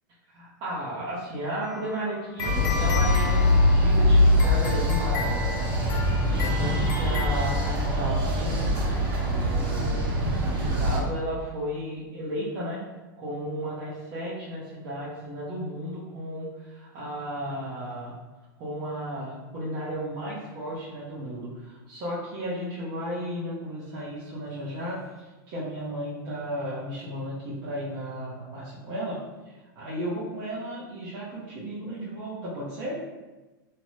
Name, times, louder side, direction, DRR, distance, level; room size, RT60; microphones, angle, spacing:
voice 1, 0.3-8.7 9.2-10.1 10.4-12.8 13.2-18.1 18.6-29.2 29.4-33.0, equal, 40° right, -9 dB, 0.8 m, -34 dB
sound 1, 1.6-8.1, left 3 dB, 55° left, 0.7 m, -35 dB
sound 2, 2.4-11.0, left 1 dB, 75° right, 1.0 m, -23 dB
2.6 x 2.1 x 3.1 m, 1.1 s
supercardioid pair, 140°, 12 cm